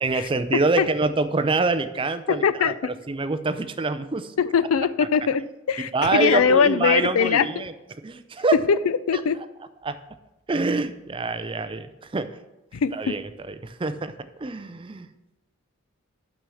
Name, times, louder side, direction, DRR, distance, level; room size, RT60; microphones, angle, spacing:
voice 1, 0.0-2.7 3.1-4.3 5.8-7.7 8.0-8.6 9.1-9.2 9.8-10.0 10.5-12.3 12.9-15.1, right 3 dB, 25° right, 11 dB, 0.4 m, -26 dB
voice 2, 2.3-2.7 4.4-5.4 5.7-7.6 8.7-9.4 12.7-13.1, left 6 dB, 85° left, 16 dB, 0.4 m, -21 dB
6.3 x 6.2 x 6.9 m, 0.98 s
head